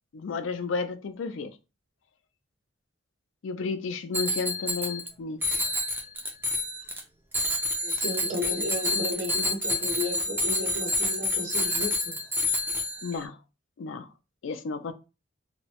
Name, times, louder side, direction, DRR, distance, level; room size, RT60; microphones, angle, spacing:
voice 1, 0.1-1.6 3.4-5.6 13.0-13.4 13.8-14.1 14.4-14.9, left 4 dB, 75° left, 0.4 m, -32 dB
Bicycle bell, 4.1-5.1 5.4-7.0 7.3-13.2, left 2 dB, 10° right, 0.4 m, -28 dB
voice 2, 7.8-12.2, left 1 dB, 80° right, 0.8 m, -33 dB
2.8 x 2.0 x 2.9 m
head